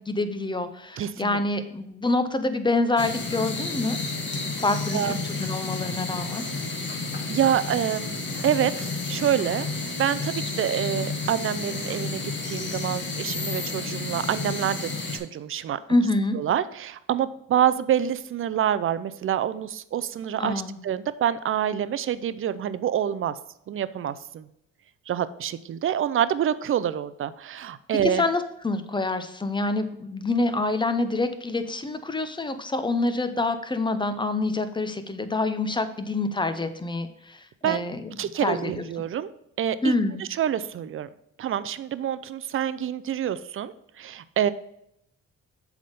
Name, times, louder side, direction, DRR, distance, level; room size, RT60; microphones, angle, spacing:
voice 1, 0.0-4.0 4.6-6.4 15.9-16.4 20.4-20.8 28.0-38.8 39.8-40.2, left 2 dB, 15° left, 10 dB, 0.6 m, -26 dB
voice 2, 1.0-1.4 4.9-5.1 7.3-9.7 10.0-15.8 16.3-23.3 23.7-24.5 25.1-28.2 37.6-37.8 38.2-39.3 39.6-41.1 41.4-44.5, right 10 dB, 45° right, 15 dB, 0.5 m, -27 dB
sound 1, 3.0-15.2, left 3 dB, 40° left, 1.4 m, -31 dB
7.5 x 3.6 x 5.3 m, 0.78 s
cardioid pair, 90°, 30 cm